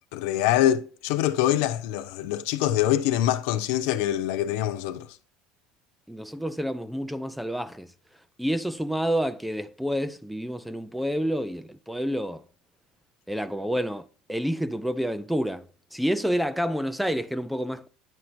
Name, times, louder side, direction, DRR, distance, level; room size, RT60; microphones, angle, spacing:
voice 1, 0.1-5.1, left 12 dB, 80° left, 0.6 m, -24 dB
voice 2, 6.1-7.9 8.4-12.5 13.3-17.9, equal, ahead, 0.4 m, -29 dB
9.8 x 4.5 x 2.6 m
cardioid pair, 135°, 0 cm